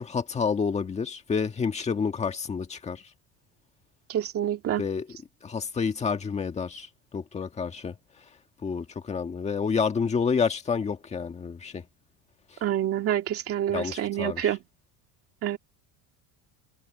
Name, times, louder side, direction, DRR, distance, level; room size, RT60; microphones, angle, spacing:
voice 1, 0.0-3.0 4.8-5.2 5.4-6.9 7.1-7.9 8.6-11.8 13.7-14.6, left 5 dB, 15° left, 1.6 m, -29 dB
voice 2, 4.1-4.8 12.6-14.6 15.4-15.6, right 11 dB, 35° right, 2.2 m, -27 dB
cardioid pair, 180°, 42 cm